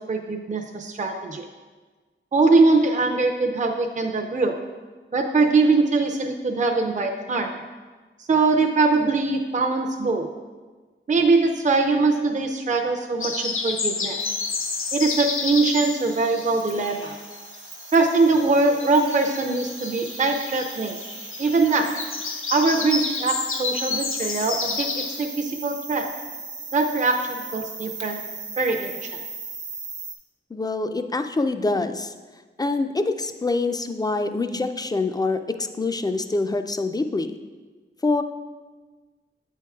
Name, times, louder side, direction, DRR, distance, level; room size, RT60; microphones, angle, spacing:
voice 1, 0.1-1.5 2.3-4.6 5.1-7.6 8.3-10.3 11.1-14.2 14.9-17.2 17.9-21.0 21.4-22.0 22.5-26.1 26.7-28.2 28.6-28.9, right 3 dB, 35° right, 3 dB, 0.5 m, -22 dB
sound 1, 13.2-17.6 17.8-25.3, left 4 dB, 80° left, 0.6 m, -30 dB
sound 2, 14.2-30.2, right 4 dB, 65° right, 1.0 m, -39 dB
voice 2, 30.5-32.1 32.6-37.4 38.0-38.2, left 3 dB, 20° left, 8 dB, 0.3 m, -25 dB
8.0 x 4.5 x 3.5 m, 1.3 s
wide cardioid pair, 100°, 21 cm